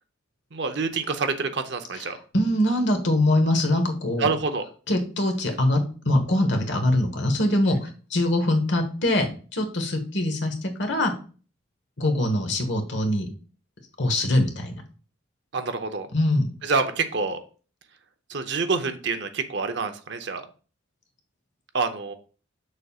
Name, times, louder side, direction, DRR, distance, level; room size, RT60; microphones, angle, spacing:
voice 1, 0.5-2.2 4.2-4.6 15.5-16.1 16.6-17.4 18.3-20.5 21.7-22.1, right 4 dB, 55° right, 7 dB, 0.7 m, -27 dB
voice 2, 2.3-4.3 4.9-11.1 12.0-13.3 14.0-14.8 16.1-16.5, left 1 dB, 60° left, 4 dB, 1.3 m, -23 dB
7.0 x 6.4 x 2.4 m, 0.38 s
head